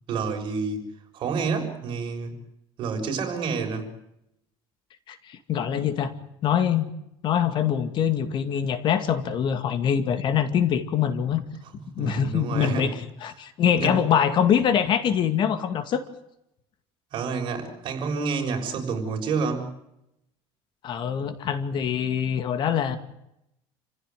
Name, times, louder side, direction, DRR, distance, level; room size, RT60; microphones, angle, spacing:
voice 1, 0.1-0.9 1.1-2.4 2.8-3.9 12.0-13.0 13.7-13.9 17.1-19.7, right 5 dB, 50° right, 6.6 m, -29 dB
voice 2, 5.1-6.1 6.4-6.9 7.2-11.4 12.0-16.0 20.8-23.0, left 8 dB, 45° left, 2.3 m, -24 dB
29.0 x 16.0 x 9.5 m
cardioid pair, 135°, 11 cm